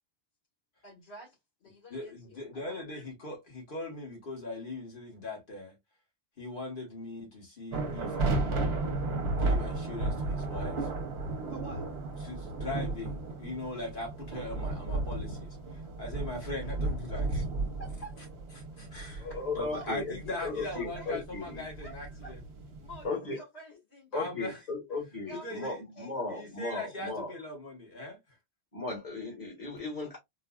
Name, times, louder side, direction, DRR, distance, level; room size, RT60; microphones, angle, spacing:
voice 1, 0.8-1.3 1.6-3.0 6.5-6.6 11.5-11.9 16.7-16.8 17.0-17.3 17.8-18.2 19.3-20.0 20.2-21.1 21.4-22.3 22.8-24.1 25.3-26.8, right 2 dB, 85° left, 1.9 m, -50 dB
voice 2, 1.9-5.7 6.4-8.8 9.3-10.9 12.2-17.4 18.6-19.3 19.5-22.4 24.1-24.6 25.3-25.8 26.3-28.2, left 2 dB, 50° left, 1.5 m, -40 dB
sound 1, 7.7-23.1, right 2 dB, 70° right, 1.0 m, -34 dB
voice 3, 19.2-20.1 20.4-21.6 23.0-23.4 24.1-27.3 28.7-30.2, left 3 dB, 35° left, 1.5 m, -36 dB
3.9 x 2.3 x 2.3 m
omnidirectional pair, 1.1 m